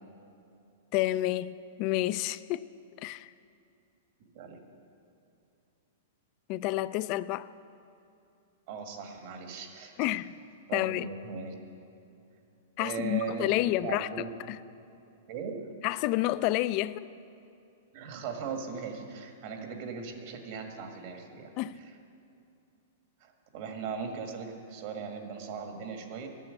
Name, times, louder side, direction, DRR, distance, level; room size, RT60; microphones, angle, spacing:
voice 1, 0.9-2.7 3.0-3.3 6.5-7.5 10.0-10.3 10.7-11.1 12.8-14.6 15.8-17.1 21.6-21.8, left 16 dB, 40° left, 0.3 m, -29 dB
voice 2, 4.2-4.6 8.7-10.2 10.7-11.5 12.8-14.5 15.3-15.7 17.9-21.5 21.8-21.9 23.2-26.3, right 5 dB, 50° right, 1.7 m, -39 dB
11.5 x 9.0 x 7.7 m
hypercardioid pair, 150°, 0 cm